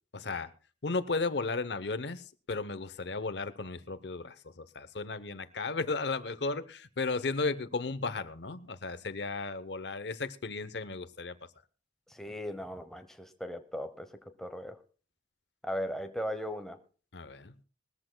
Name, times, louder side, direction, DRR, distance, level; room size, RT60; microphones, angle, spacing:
voice 1, 0.1-0.5 0.8-11.4 17.1-17.5, left 3 dB, 65° left, 0.8 m, -35 dB
voice 2, 12.1-14.8 15.6-16.8, equal, ahead, 0.8 m, -38 dB
21.0 x 14.0 x 2.2 m
head